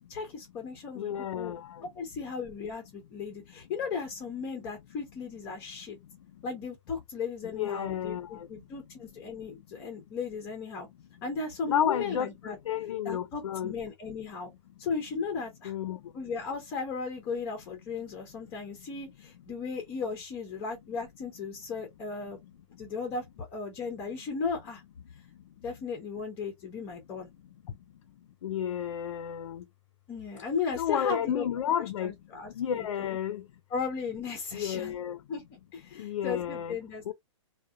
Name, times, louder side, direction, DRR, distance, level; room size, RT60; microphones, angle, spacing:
voice 1, 0.1-1.5 1.9-6.0 6.4-10.9 11.2-12.6 13.0-14.5 14.8-15.7 16.1-22.4 22.8-24.8 25.6-27.3 30.1-31.5 31.8-33.2 33.7-35.0 35.3-35.4 35.7-37.1, left 5 dB, 15° left, 0.4 m, -36 dB
voice 2, 1.0-1.7 7.4-8.5 11.7-13.7 15.6-16.0 28.4-29.6 30.8-32.1 32.6-33.4 34.5-35.2 36.0-36.8 37.1-37.2, left 9 dB, 80° left, 0.4 m, -31 dB
2.6 x 2.0 x 2.3 m
hypercardioid pair, 165°, 16 cm